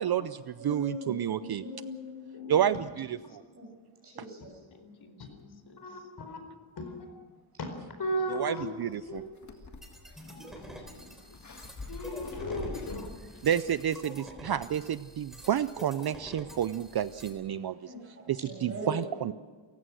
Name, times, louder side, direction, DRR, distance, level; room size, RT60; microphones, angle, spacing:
voice 1, 0.0-1.6 2.5-3.2 8.3-9.2 13.4-17.9 18.3-19.3, right 10 dB, 50° right, 14 dB, 0.5 m, -30 dB
voice 2, 0.6-2.7 3.5-3.7 4.0-4.6 17.8-18.0 18.4-19.0, equal, 30° right, 0 dB, 7.7 m, -40 dB
voice 3, 2.3-3.5 4.7-6.1 7.7-8.5 8.9-9.1 10.3-11.5 13.3-13.5 19.0-19.3, left 4 dB, 70° left, 2 dB, 3.3 m, -55 dB
voice 4, 8.0-9.2 11.9-13.1, equal, 50° left, 5 dB, 4.6 m, -34 dB
sound 1, 8.9-14.1, left 3 dB, 35° left, 2.0 m, -46 dB
sound 2, 9.8-17.3, equal, ahead, 3.6 m, -48 dB
28.5 x 15.5 x 6.3 m, 1.5 s
wide cardioid pair, 175°, 49 cm